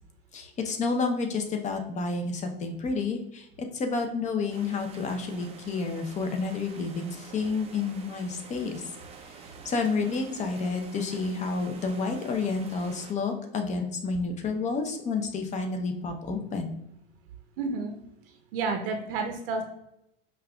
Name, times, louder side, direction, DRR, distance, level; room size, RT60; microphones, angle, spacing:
voice 1, 0.3-8.8 9.2-9.3 9.6-16.7, left 4 dB, 25° left, 5 dB, 0.6 m, -30 dB
sound 1, 4.5-13.1, right 5 dB, 20° right, 0.4 m, -48 dB
voice 2, 17.6-18.0 18.5-19.6, right 4 dB, 70° right, 4 dB, 0.7 m, -30 dB
5.4 x 2.5 x 2.2 m, 0.83 s
hypercardioid pair, 110°, 29 cm